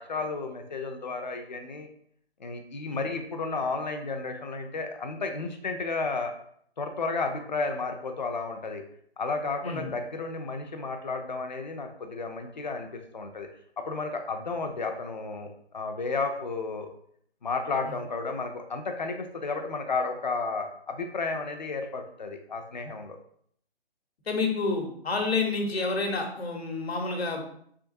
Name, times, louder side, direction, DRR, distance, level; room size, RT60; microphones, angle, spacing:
voice 1, 0.0-1.9 2.4-6.3 6.8-8.8 9.2-13.5 13.8-16.9 17.4-23.2, left 3 dB, 45° left, 5 dB, 0.5 m, -32 dB
voice 2, 24.3-27.4, left 3 dB, 90° left, 2 dB, 1.0 m, -29 dB
3.5 x 3.0 x 2.6 m, 0.64 s
hypercardioid pair, 170°, 31 cm